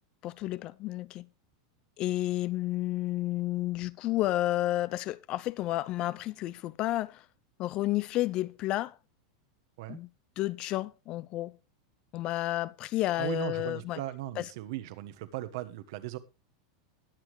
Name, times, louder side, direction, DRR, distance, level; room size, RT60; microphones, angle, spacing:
voice 1, 0.2-1.3 2.0-7.2 7.6-8.9 9.9-10.1 10.4-11.6 12.1-14.0 14.4-14.5, left 16 dB, 40° left, 0.5 m, -31 dB
voice 2, 13.2-16.2, right 15 dB, 65° right, 1.4 m, -37 dB
19.5 x 7.2 x 3.2 m
supercardioid pair, 140°, 2 cm